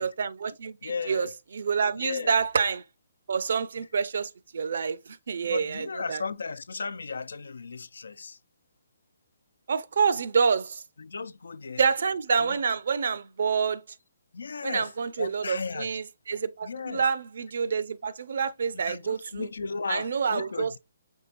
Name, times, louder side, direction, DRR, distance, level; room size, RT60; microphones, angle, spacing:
voice 1, 0.0-1.3 1.5-2.8 3.3-6.2 9.7-10.8 11.8-13.8 14.6-19.5 19.9-20.8, right 6 dB, 65° right, 0.5 m, -27 dB
voice 2, 0.8-1.3 1.9-2.4 3.8-3.9 5.5-8.4 11.0-11.8 12.4-12.6 14.3-14.9 15.2-15.9 16.6-17.1 18.7-20.8, left 5 dB, 80° left, 0.3 m, -35 dB
5.4 x 3.4 x 2.5 m
hypercardioid pair, 155°, 0 cm